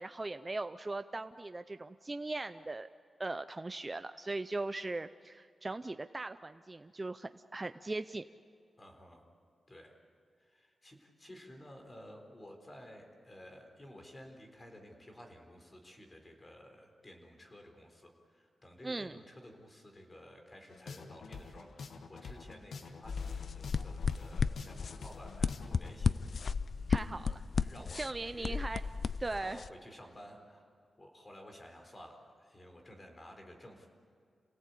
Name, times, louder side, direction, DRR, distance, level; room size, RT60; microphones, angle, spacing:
voice 1, 0.0-2.9 3.2-8.2 18.8-19.2 26.9-27.4 27.9-28.8 29.2-29.6, right 2 dB, 20° right, 10 dB, 0.5 m, -39 dB
voice 2, 8.8-9.2 9.7-9.9 10.4-26.3 26.5-26.7 27.5-28.6 29.4-30.7 31.0-33.9, equal, 25° left, 3 dB, 4.1 m, -53 dB
sound 1, 20.7-25.9, left 4 dB, 85° left, 1.6 m, -48 dB
sound 2, 23.0-29.7, left 5 dB, 50° left, 0.5 m, -34 dB
28.0 x 17.5 x 8.5 m, 2.3 s
wide cardioid pair, 135°, 0 cm